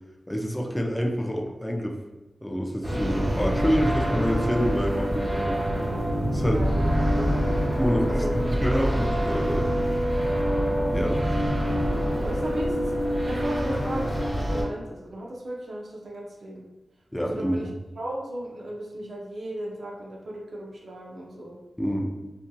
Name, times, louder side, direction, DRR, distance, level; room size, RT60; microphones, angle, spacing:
voice 1, 0.3-2.0 2.4-5.6 6.3-6.6 7.8-9.7 10.9-11.2 17.1-17.7 21.8-22.0, equal, 5° left, 0 dB, 0.4 m, -27 dB
sound 1, 2.8-14.6, equal, 30° right, 1.0 m, -25 dB
voice 2, 6.4-7.3 8.1-8.7 12.2-12.9 13.3-16.6 17.2-17.7 18.0-21.6, right 1 dB, 80° right, -2 dB, 0.5 m, -35 dB
2.7 x 2.5 x 2.2 m, 1.1 s
cardioid pair, 60°, 0 cm